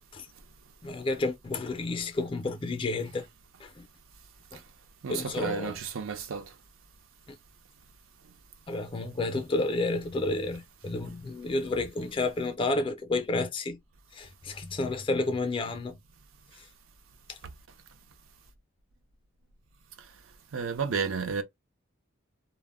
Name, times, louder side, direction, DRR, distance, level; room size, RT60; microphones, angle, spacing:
voice 1, 0.8-3.3 3.6-3.9 4.5-4.6 5.1-5.7 7.3-7.4 8.7-13.8 14.1-16.0 17.3-17.4, left 2 dB, 25° left, 0.4 m, -31 dB
voice 2, 5.0-6.5 20.5-21.4, right 5 dB, 80° right, 0.5 m, -32 dB
2.1 x 2.0 x 3.4 m
head